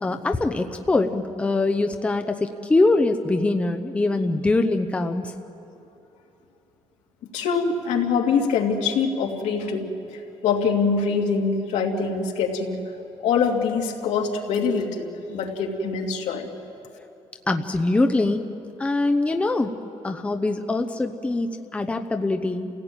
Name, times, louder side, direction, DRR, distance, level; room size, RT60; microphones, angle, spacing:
voice 1, 0.0-5.3 17.5-18.5 18.8-19.7 20.0-22.8, left 2 dB, 10° left, 6 dB, 0.7 m, -23 dB
voice 2, 7.3-9.9 10.4-12.8 13.2-16.5, left 5 dB, 75° left, 1 dB, 2.7 m, -24 dB
29.5 x 16.5 x 9.0 m, 2.9 s
cardioid pair, 170°, 12 cm